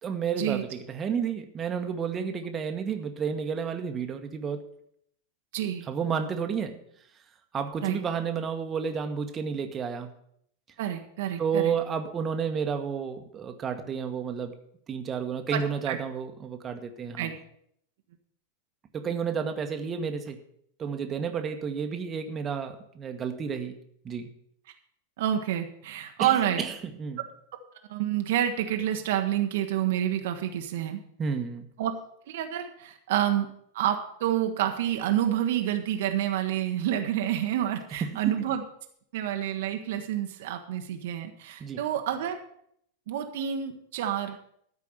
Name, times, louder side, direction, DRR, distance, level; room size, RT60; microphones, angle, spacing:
voice 1, 0.0-4.7 5.9-6.8 7.5-10.1 11.4-14.5 14.9-17.3 18.9-20.4 20.8-23.8 24.0-24.3 26.2-27.2 31.2-31.7 38.1-38.3 41.6-41.8, right 6 dB, 25° right, 5 dB, 1.2 m, -31 dB
voice 2, 5.5-5.9 7.8-8.0 10.8-11.7 15.5-16.0 17.2-17.4 25.2-26.6 27.9-31.0 31.8-31.9 32.3-33.5 33.7-38.6 39.1-42.4 43.1-44.4, right 11 dB, 55° right, 5 dB, 1.0 m, -28 dB
13.0 x 4.8 x 8.5 m, 0.69 s
figure-of-eight pair, 90°, 0 cm